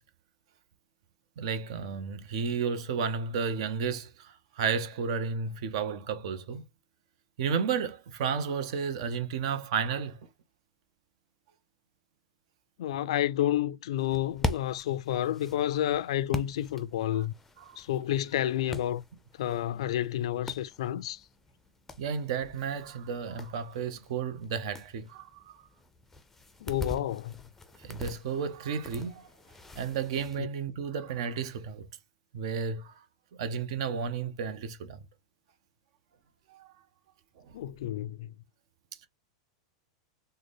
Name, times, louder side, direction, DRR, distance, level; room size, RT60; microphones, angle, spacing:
voice 1, 1.4-6.7 7.4-10.2 17.1-17.2 17.6-17.8 18.4-18.5 22.0-25.6 27.8-29.3 29.8-31.9 32.3-33.0 33.4-35.0 36.5-36.7 37.4-37.6, right 6 dB, 65° right, 0.7 m, -32 dB
voice 2, 12.8-17.3 17.8-19.0 19.4-21.2 26.6-27.3 30.4-30.5 37.5-38.3, left 12 dB, 75° left, 0.3 m, -30 dB
sound 1, 14.0-30.4, left 2 dB, 10° left, 0.5 m, -42 dB
3.7 x 2.1 x 3.3 m
supercardioid pair, 130°, 3 cm